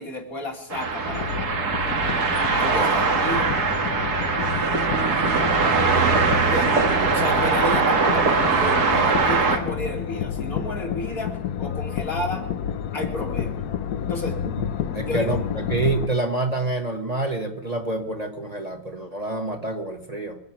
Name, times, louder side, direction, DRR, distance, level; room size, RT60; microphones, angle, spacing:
voice 1, 0.0-1.6 2.5-3.5 6.3-6.8 7.1-12.4 12.9-13.6 14.0-14.6 15.1-15.4, left 2 dB, 65° left, 1 dB, 2.9 m, -32 dB
sound 1, 0.7-9.6, right 4 dB, 85° right, 2.2 m, -21 dB
sound 2, 1.1-16.1, left 8 dB, 80° left, 1.3 m, -30 dB
voice 2, 2.5-2.9 14.9-20.4, right 2 dB, 25° right, 3 dB, 1.3 m, -27 dB
25.5 x 8.6 x 5.9 m, 0.82 s
omnidirectional pair, 1.6 m